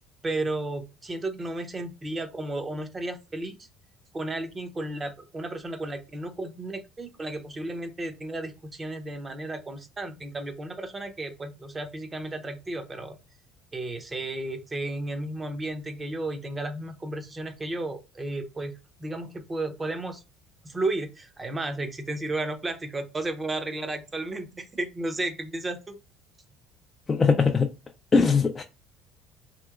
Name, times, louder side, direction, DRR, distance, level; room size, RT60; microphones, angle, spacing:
voice 1, 0.2-3.6 4.1-13.2 13.7-20.2 20.6-25.9, right 2 dB, 20° right, 0.6 m, -33 dB
voice 2, 27.1-27.7 28.1-28.6, left 4 dB, 25° left, 0.3 m, -20 dB
3.0 x 2.9 x 2.4 m
cardioid pair, 115°, 0 cm